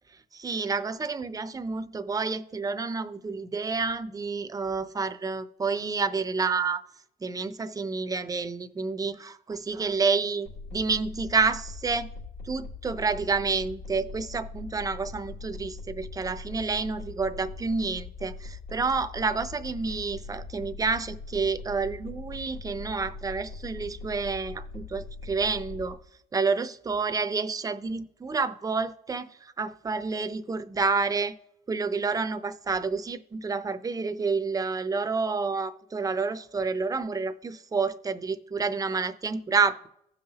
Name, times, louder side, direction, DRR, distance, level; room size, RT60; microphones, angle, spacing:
voice 1, 0.3-6.8 7.2-12.1 12.4-26.0 26.3-31.3 31.7-39.9, right 4 dB, 20° right, 0.6 m, -29 dB
sound 1, 10.4-25.9, left 3 dB, 70° left, 2.7 m, -41 dB
16.0 x 5.6 x 2.9 m
cardioid pair, 110°, 17 cm